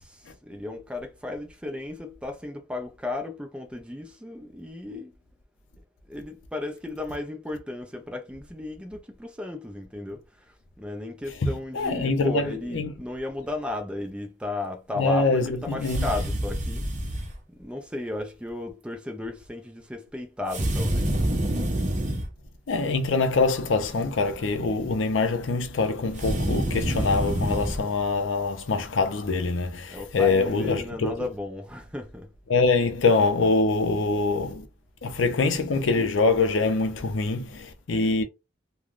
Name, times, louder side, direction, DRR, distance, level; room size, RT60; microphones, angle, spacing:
voice 1, 0.0-5.1 6.1-16.8 17.5-21.2 29.9-32.3, left 2 dB, 5° right, 0.4 m, -35 dB
voice 2, 11.7-12.4 12.7-12.9 15.0-16.1 22.7-31.1 32.5-34.7 35.0-38.2, left 3 dB, 90° left, 0.6 m, -24 dB
sound 1, 15.8-17.3 20.5-22.3 26.1-27.8, right 1 dB, 40° right, 0.7 m, -27 dB
3.2 x 2.2 x 2.5 m
head